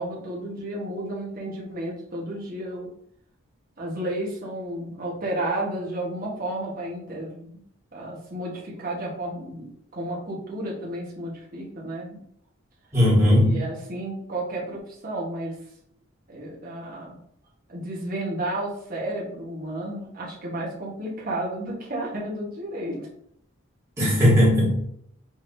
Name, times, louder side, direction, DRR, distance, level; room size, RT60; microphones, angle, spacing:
voice 1, 0.0-2.9 3.8-7.6 7.9-9.7 9.9-12.2 13.3-15.6 16.3-17.2 17.7-23.1, right 1 dB, 45° right, -4 dB, 1.4 m, -32 dB
voice 2, 12.9-13.6 24.0-24.9, equal, 15° right, -9 dB, 1.9 m, -18 dB
5.2 x 3.5 x 2.7 m, 0.69 s
head